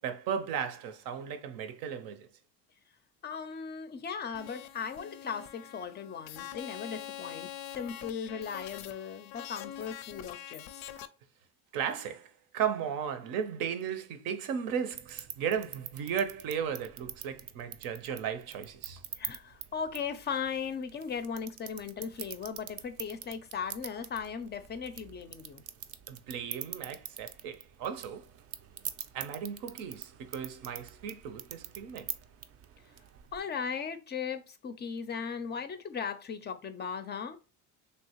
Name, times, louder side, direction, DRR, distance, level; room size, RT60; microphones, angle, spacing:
voice 1, 0.0-2.3 11.7-19.0 26.1-28.3 29.1-32.2, right 8 dB, 75° right, 0.7 m, -35 dB
voice 2, 3.2-10.7 19.1-25.6 33.3-37.4, left 6 dB, 30° left, 0.4 m, -37 dB
sound 1, 4.3-11.1, left 11 dB, 85° left, 0.5 m, -44 dB
sound 2, 14.9-33.4, right 10 dB, 45° right, 0.4 m, -45 dB
3.3 x 2.7 x 2.9 m
cardioid pair, 110°, 34 cm